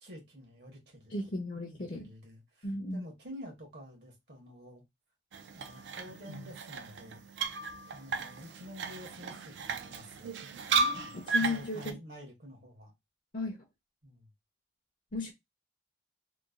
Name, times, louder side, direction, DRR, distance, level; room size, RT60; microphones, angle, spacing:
voice 1, 0.0-1.1 1.5-2.7 2.9-4.8 5.5-7.2 7.9-10.4 10.9-11.2 11.4-12.9 14.0-14.3, equal, 65° right, 1.1 m, -49 dB
voice 2, 1.1-2.1 2.6-3.1 10.9-12.0 13.3-13.6 15.1-15.3, left 3 dB, 45° left, 0.5 m, -35 dB
sound 1, 5.3-11.9, right 4 dB, 80° right, 0.4 m, -35 dB
3.0 x 2.1 x 2.4 m
head